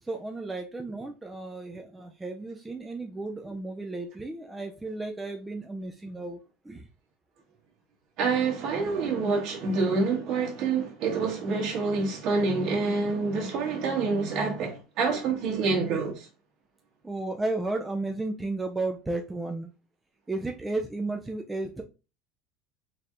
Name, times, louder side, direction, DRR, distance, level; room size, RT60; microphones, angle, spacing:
voice 1, 0.0-6.4 6.6-6.9 17.0-19.7 20.3-21.8, right 2 dB, 10° right, 0.4 m, -33 dB
voice 2, 8.2-16.3, right 4 dB, 50° right, 1.7 m, -27 dB
4.3 x 3.3 x 2.5 m
cardioid pair, 155°, 0 cm